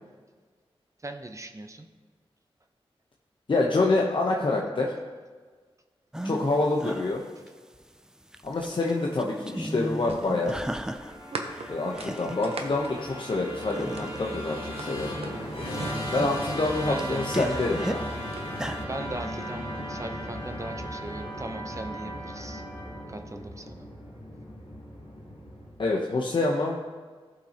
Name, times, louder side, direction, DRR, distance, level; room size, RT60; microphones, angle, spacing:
voice 1, 1.0-1.9 16.9-17.2 18.8-22.6 23.1-23.9, right 2 dB, 30° right, 6 dB, 0.8 m, -38 dB
voice 2, 3.5-4.9 6.2-7.2 8.4-10.6 11.7-15.2 16.1-18.0 25.8-26.7, left 2 dB, 55° left, -1 dB, 0.9 m, -26 dB
sound 1, 6.1-6.5 6.8-7.8 8.2-8.9 9.2-11.2 11.5-12.4 12.9-13.0 13.6-14.3 14.9-15.3 15.6-18.0 18.5-18.8, right 1 dB, 5° right, 0.4 m, -35 dB
sound 2, 8.9-14.2 14.6-16.7 17.7-18.5, right 3 dB, 75° right, 0.9 m, -41 dB
Musical instrument, 10.6-25.9, equal, 90° left, 2.8 m, -36 dB
15.0 x 5.7 x 2.9 m, 1.5 s
wide cardioid pair, 60°, 10 cm